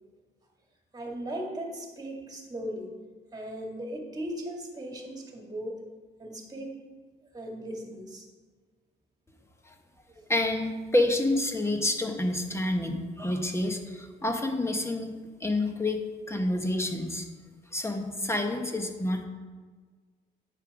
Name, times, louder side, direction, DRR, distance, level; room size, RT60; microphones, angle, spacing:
voice 1, 0.9-2.9 3.3-5.8 6.2-6.8 7.3-8.3 10.1-10.3, right 1 dB, 20° right, 1 dB, 2.0 m, -37 dB
voice 2, 10.3-15.1 15.4-16.0 16.3-17.3 17.7-19.2, left 1 dB, 15° left, 4 dB, 1.1 m, -28 dB
8.7 x 5.7 x 4.9 m, 1.5 s
cardioid pair, 90°, 20 cm